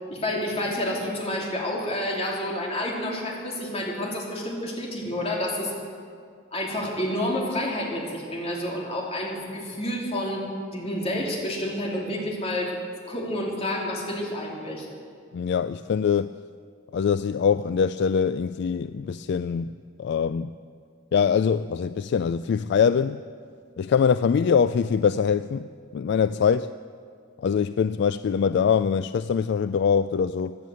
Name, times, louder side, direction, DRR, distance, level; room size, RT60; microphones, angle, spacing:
voice 1, 0.1-5.7 6.5-12.7 13.1-14.9, left 1 dB, 30° left, 3.0 m, -29 dB
voice 2, 15.3-16.3 16.9-19.7 20.0-20.5 21.1-23.2 23.8-25.7 25.9-26.7 27.4-30.6, left 6 dB, 60° left, 0.3 m, -23 dB
16.5 x 11.0 x 7.8 m
head